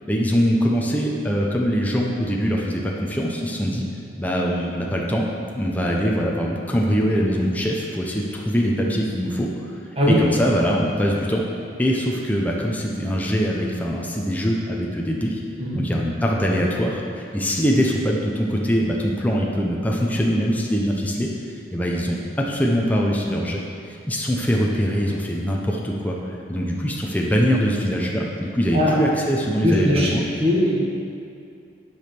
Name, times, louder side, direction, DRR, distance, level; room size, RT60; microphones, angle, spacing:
voice 1, 0.1-3.8 4.2-5.2 5.6-9.5 10.2-11.4 11.8-15.4 15.7-21.3 21.7-26.2 26.5-30.2, equal, 10° left, -2 dB, 0.8 m, -23 dB
voice 2, 29.6-30.1 30.4-30.8, equal, 30° right, -4 dB, 1.7 m, -19 dB
9.8 x 5.4 x 6.0 m, 2.5 s
head